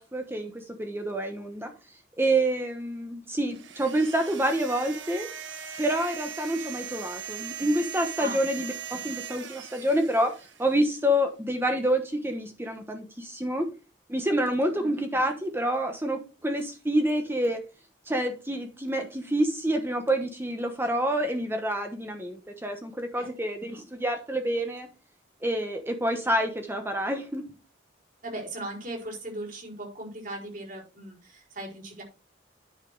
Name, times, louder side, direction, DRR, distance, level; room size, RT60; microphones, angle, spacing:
voice 1, 0.0-1.7 2.2-5.3 5.8-10.3 10.6-13.7 14.1-17.6 18.1-24.9 25.4-27.4, right 1 dB, 10° right, 5 dB, 1.1 m, -27 dB
sound 1, 3.5-10.9, right 8 dB, 80° right, 1.2 m, -40 dB
voice 2, 28.2-32.0, right 1 dB, 45° right, 0 dB, 4.8 m, -38 dB
9.9 x 6.0 x 4.8 m, 0.32 s
head